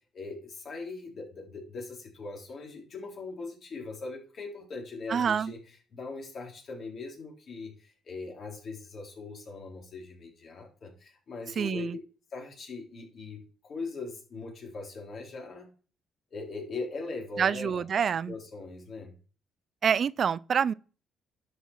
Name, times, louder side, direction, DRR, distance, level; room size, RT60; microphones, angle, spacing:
voice 1, 0.1-5.6 5.9-12.0 12.3-15.7 16.3-17.8 18.3-19.1, left 3 dB, 55° left, 3.7 m, -40 dB
voice 2, 5.1-5.5 11.6-12.0 17.4-18.4 19.8-20.7, right 7 dB, 55° right, 0.4 m, -27 dB
11.0 x 5.9 x 4.7 m
cardioid pair, 90°, 0 cm